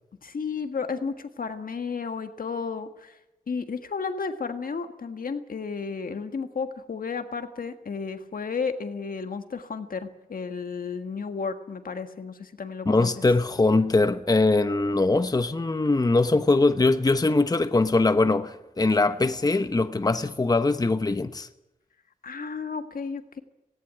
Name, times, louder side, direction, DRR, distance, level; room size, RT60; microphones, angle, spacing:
voice 1, 0.2-3.2 3.5-13.2 22.2-23.4, left 5 dB, 75° left, 1.7 m, -33 dB
voice 2, 12.9-21.5, left 3 dB, 25° left, 0.9 m, -22 dB
18.0 x 17.5 x 9.1 m
wide cardioid pair, 100°, 15 cm